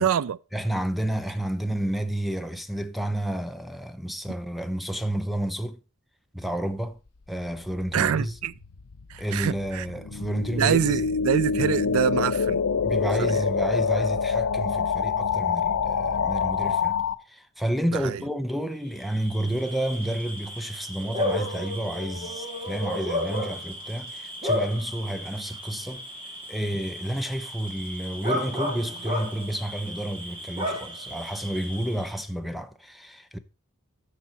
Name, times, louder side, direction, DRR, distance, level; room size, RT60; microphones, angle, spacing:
voice 1, 0.0-0.4 7.9-8.5 9.1-9.9 10.5-12.6 13.2-13.4 18.0-18.2, right 8 dB, 70° right, 0.4 m, -25 dB
voice 2, 0.5-5.8 6.3-7.0 7.3-8.3 9.2-11.0 11.5-11.8 12.8-17.0 17.3-26.0 26.5-33.4, right 1 dB, ahead, 0.6 m, -30 dB
sound 1, 8.1-17.1, left 6 dB, 85° left, 0.6 m, -26 dB
Bark / Cricket, 18.9-32.2, left 1 dB, 25° right, 2.7 m, -33 dB
10.5 x 6.7 x 4.1 m
head